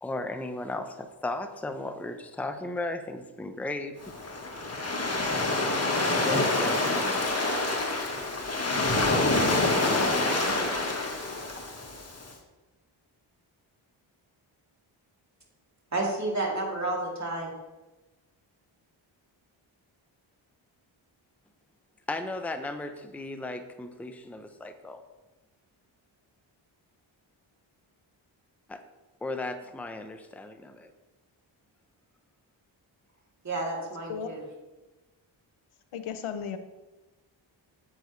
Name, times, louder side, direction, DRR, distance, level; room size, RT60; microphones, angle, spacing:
voice 1, 0.0-4.0 6.2-7.6 9.7-10.9 22.1-25.0 28.7-28.8 29.2-30.9, left 2 dB, 5° left, 7 dB, 0.7 m, -36 dB
Waves surf, 4.0-12.2, left 2 dB, 30° left, 1.5 m, -27 dB
voice 2, 15.9-17.5 33.4-34.4, right 2 dB, 35° right, -3 dB, 3.0 m, -30 dB
voice 3, 33.8-34.3 35.9-36.6, left 7 dB, 90° left, 9 dB, 0.8 m, -35 dB
9.7 x 7.9 x 3.2 m, 1.1 s
cardioid pair, 65°, 48 cm